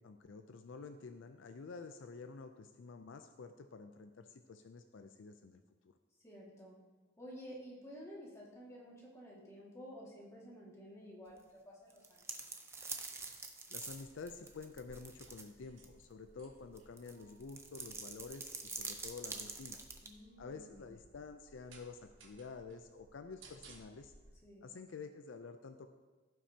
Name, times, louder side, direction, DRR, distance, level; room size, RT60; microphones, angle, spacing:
voice 1, 0.0-5.9 13.7-19.8 20.4-24.1 24.6-25.9, left 4 dB, 65° left, 8 dB, 0.4 m, -50 dB
voice 2, 6.2-6.8 7.2-12.4 20.0-20.8 24.4-24.7, equal, 15° left, -5 dB, 1.9 m, -52 dB
sound 1, 11.9-15.5 15.8-15.9 16.8-20.1, right 4 dB, 15° right, 0.6 m, -45 dB
sound 2, 13.8-24.3, right 2 dB, 70° right, 1.3 m, -62 dB
15.5 x 5.9 x 2.8 m, 1.3 s
head